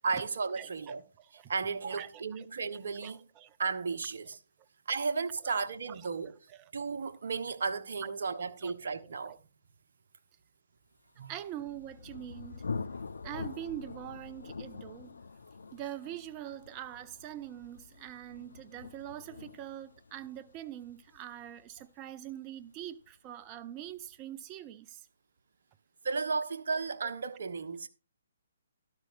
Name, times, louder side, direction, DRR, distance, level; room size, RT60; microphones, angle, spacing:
voice 1, 0.0-1.0 1.5-3.2 3.6-4.4 4.9-6.4 6.7-9.3 11.2-11.3 26.0-27.9, right 4 dB, 65° right, 1.2 m, -34 dB
voice 2, 0.6-1.5 1.8-2.5 3.0-3.6 5.4-5.5 5.9-6.0 6.5-6.7 8.0-8.1 8.6-8.7 9.0-9.4 11.3-12.6 13.2-15.2 15.7-25.1 27.0-27.1, right 12 dB, 30° right, 0.8 m, -44 dB
Thunder, 11.3-22.8, left 4 dB, 75° left, 0.7 m, -45 dB
13.0 x 11.5 x 2.6 m
figure-of-eight pair, 135°, 0 cm